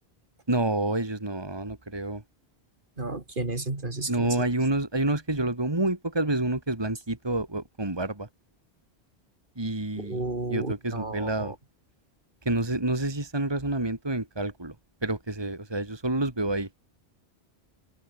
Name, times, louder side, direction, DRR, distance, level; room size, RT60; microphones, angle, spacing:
voice 1, 0.5-2.2 4.1-8.3 9.6-10.2 10.5-11.5 12.4-14.7 15.0-16.7, right 2 dB, 25° right, 2.3 m, -28 dB
voice 2, 3.0-4.4 10.0-11.5, right 2 dB, 50° right, 3.2 m, -32 dB
omnidirectional pair, 1.1 m